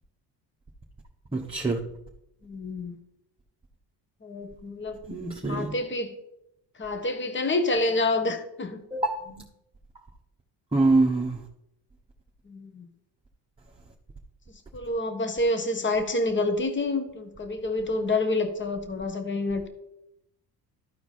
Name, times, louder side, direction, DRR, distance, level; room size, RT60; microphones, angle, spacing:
voice 1, 1.3-1.8 5.1-5.7 8.9-9.4 10.7-11.4, right 2 dB, 10° right, 1.1 m, -25 dB
voice 2, 2.4-3.0 4.2-5.0 5.5-6.1 6.8-8.8 12.5-12.9 14.7-19.7, left 2 dB, 25° left, 1.4 m, -28 dB
13.5 x 4.6 x 4.2 m
cardioid pair, 80°, 44 cm